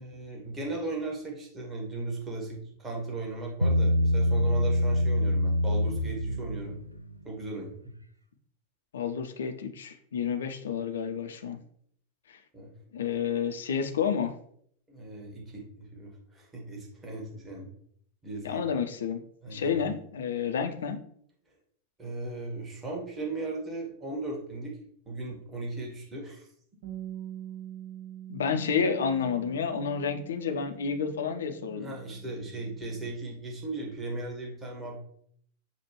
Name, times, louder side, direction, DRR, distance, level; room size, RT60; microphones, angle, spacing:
voice 1, 0.0-6.8 7.2-7.7 12.5-12.7 14.9-17.7 18.2-18.6 19.4-19.8 22.0-24.7 25.0-26.5 31.7-35.0, right 2 dB, 20° right, -1 dB, 1.5 m, -37 dB
Bass guitar, 3.6-7.0, left 1 dB, 90° right, 0.3 m, -25 dB
voice 2, 8.9-11.6 12.3-12.4 12.9-14.4 18.4-21.0 28.3-31.9, left 6 dB, 65° left, 7 dB, 0.5 m, -30 dB
Bass guitar 2, 26.8-33.1, right 11 dB, 50° right, 1.3 m, -45 dB
6.8 x 2.4 x 3.0 m, 0.65 s
figure-of-eight pair, 90°, 0 cm